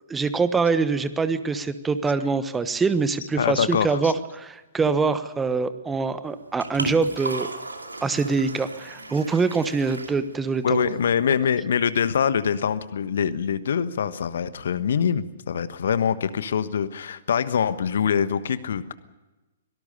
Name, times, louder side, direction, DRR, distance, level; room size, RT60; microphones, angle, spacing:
voice 1, 0.1-7.5 8.0-10.8, right 4 dB, 10° right, 13 dB, 1.2 m, -24 dB
voice 2, 3.4-4.2 10.6-18.9, left 7 dB, 60° left, 13 dB, 1.3 m, -24 dB
Liquid, 6.2-11.2, right 2 dB, 80° right, 2.6 m, -36 dB
24.5 x 18.5 x 6.8 m, 1.1 s
figure-of-eight pair, 115°, 0 cm